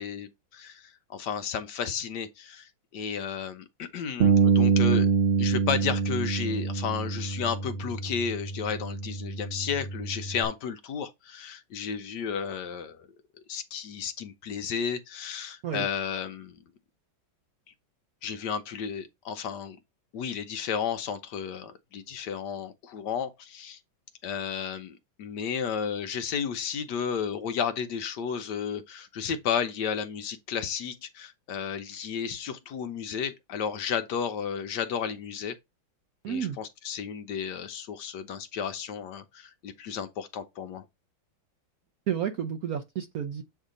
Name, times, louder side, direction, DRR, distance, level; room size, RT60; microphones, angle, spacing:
voice 1, 0.0-5.1 5.4-13.1 13.5-16.5 18.2-19.8 20.1-23.8 24.2-24.9 25.2-35.6 36.3-40.8, left 7 dB, 70° left, 1.1 m, -33 dB
Bass guitar, 4.2-10.4, right 6 dB, 85° right, 0.5 m, -26 dB
voice 2, 36.2-36.6 42.1-43.4, right 8 dB, 65° right, 0.9 m, -31 dB
8.0 x 2.8 x 5.0 m
omnidirectional pair, 2.2 m